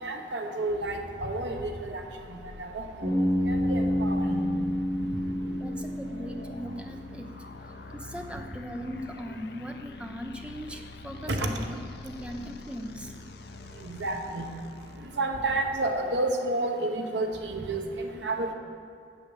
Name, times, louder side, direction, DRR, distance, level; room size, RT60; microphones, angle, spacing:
voice 1, 0.0-2.0 2.6-3.1 3.5-4.5 11.3-11.5 13.8-14.5 15.2-18.5, right 2 dB, 80° right, 4 dB, 1.0 m, -30 dB
sound 1, 2.0-15.2, left 3 dB, 60° left, 0.5 m, -45 dB
Bass guitar, 3.0-7.0, equal, 50° right, 3.4 m, -28 dB
voice 2, 5.6-7.3 7.9-11.8 12.0-13.1, equal, 5° right, 3 dB, 0.7 m, -39 dB
8.7 x 7.3 x 8.7 m, 2.4 s
head